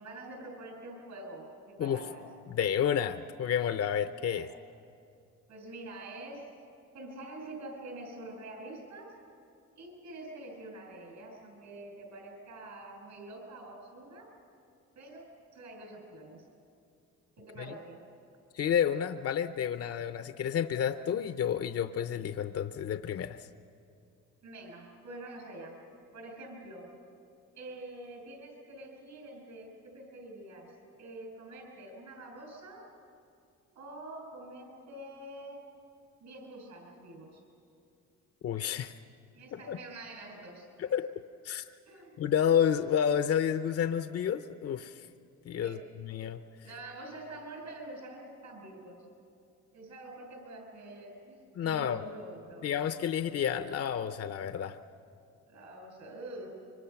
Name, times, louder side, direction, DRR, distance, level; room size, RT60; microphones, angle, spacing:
voice 1, 0.0-2.2 4.3-4.5 5.5-6.5 6.9-9.1 9.8-14.3 15.0-16.4 17.4-18.0 24.4-25.8 26.1-26.9 27.6-30.7 31.0-32.9 33.8-35.6 36.2-37.4 39.3-40.7 41.9-42.2 45.6-45.8 46.6-49.0 49.7-52.7 55.5-56.5, right 1 dB, 75° right, 2 dB, 7.3 m, -46 dB
voice 2, 2.5-4.5 17.6-17.7 18.5-23.5 38.4-38.9 39.7-39.8 40.8-41.1 41.4-41.6 42.2-45.1 45.4-46.4 51.5-52.0 52.6-54.8, left 8 dB, 50° left, 10 dB, 0.7 m, -30 dB
25.0 x 24.5 x 5.9 m, 2.4 s
cardioid pair, 90°, 30 cm